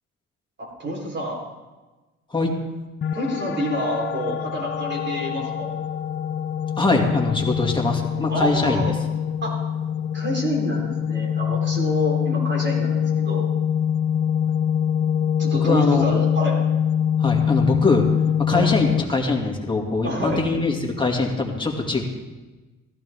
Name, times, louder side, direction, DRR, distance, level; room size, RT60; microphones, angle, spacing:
voice 1, 0.6-1.4 3.1-5.7 8.2-9.0 9.4-9.6 10.1-13.5 15.4-16.6 18.5-18.7 20.0-20.4, equal, 35° right, -1 dB, 3.9 m, -27 dB
sound 1, 3.0-19.0, left 8 dB, 40° left, 0.6 m, -24 dB
voice 2, 6.8-8.8 15.6-16.0 17.2-18.1 18.5-22.0, left 3 dB, 15° left, 1 dB, 2.4 m, -22 dB
15.5 x 14.5 x 3.6 m, 1.2 s
cardioid pair, 90°, 30 cm